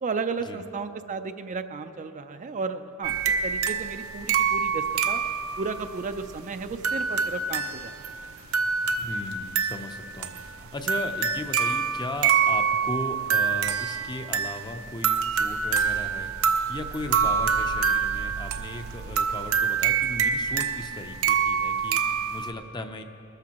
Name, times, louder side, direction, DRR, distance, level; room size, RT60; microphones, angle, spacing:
voice 1, 0.0-3.2 3.4-5.2 5.6-7.9, right 4 dB, 35° right, 8 dB, 0.4 m, -33 dB
sound 1, 3.0-22.5, right 6 dB, 80° right, 0.7 m, -26 dB
voice 2, 8.8-23.0, left 2 dB, 20° left, 6 dB, 0.6 m, -37 dB
21.0 x 13.5 x 3.0 m, 2.8 s
head